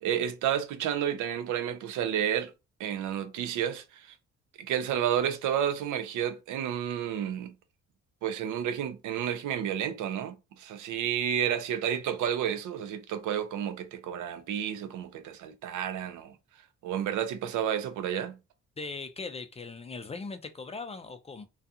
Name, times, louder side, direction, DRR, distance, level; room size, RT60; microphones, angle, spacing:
voice 1, 0.0-2.5 2.8-4.1 4.6-7.5 8.2-16.3 16.8-18.4, right 9 dB, 85° right, 0.5 m, -31 dB
voice 2, 18.8-21.4, left 4 dB, 20° left, 0.3 m, -39 dB
2.3 x 2.3 x 2.6 m
cardioid pair, 90°, 30 cm